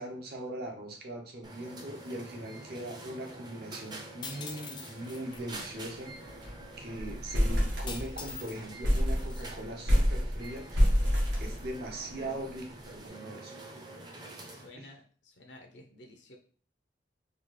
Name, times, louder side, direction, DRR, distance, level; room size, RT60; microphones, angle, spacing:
voice 1, 0.0-6.1 6.4-10.9 11.4-13.6 14.8-14.9, right 1 dB, 55° right, 2 dB, 0.8 m, -41 dB
sound 1, 1.4-14.7, right 1 dB, 25° right, 0.6 m, -47 dB
sound 2, 4.2-5.4 7.9-8.6 8.9-9.5, left 6 dB, 25° left, 0.4 m, -43 dB
sound 3, 5.3-5.5 5.8-5.9 6.2-6.6 7.0-8.4 8.8-12.1, equal, 75° right, 1.1 m, -27 dB
voice 2, 14.5-16.4, left 1 dB, 70° left, 3 dB, 0.6 m, -52 dB
4.0 x 2.4 x 3.1 m, 0.41 s
head